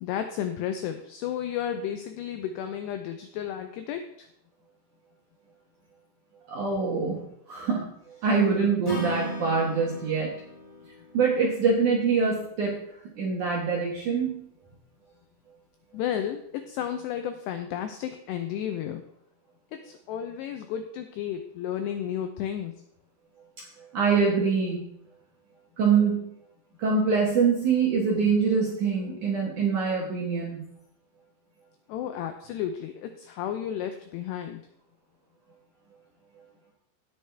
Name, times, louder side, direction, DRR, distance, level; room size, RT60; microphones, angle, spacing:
voice 1, 0.0-4.3 15.9-19.0 19.7-22.7 31.9-34.7, left 9 dB, 85° left, 7 dB, 2.4 m, -33 dB
voice 2, 6.5-10.3 11.1-12.8 13.2-14.4 23.6-24.9 25.8-26.2 26.8-30.7, right 5 dB, 65° right, -2 dB, 2.0 m, -25 dB
Acoustic guitar / Strum, 8.8-12.1, right 2 dB, 35° left, 2.1 m, -37 dB
17.0 x 6.5 x 3.4 m, 0.73 s
omnidirectional pair, 5.6 m